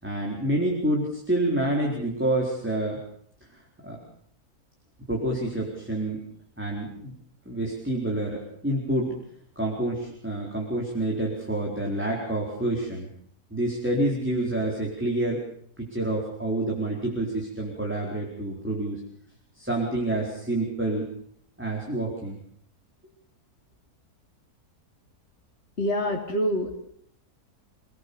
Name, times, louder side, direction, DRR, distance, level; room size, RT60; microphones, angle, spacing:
voice 1, 0.0-3.0 3.5-4.0 5.1-6.3 6.6-7.1 7.5-9.2 9.6-13.1 13.5-15.4 15.8-19.0 19.5-21.0 21.6-22.4, right 1 dB, 5° right, -2 dB, 4.4 m, -28 dB
voice 2, 25.8-26.8, equal, 40° left, -3 dB, 3.3 m, -26 dB
28.0 x 19.5 x 7.1 m, 0.66 s
omnidirectional pair, 1.7 m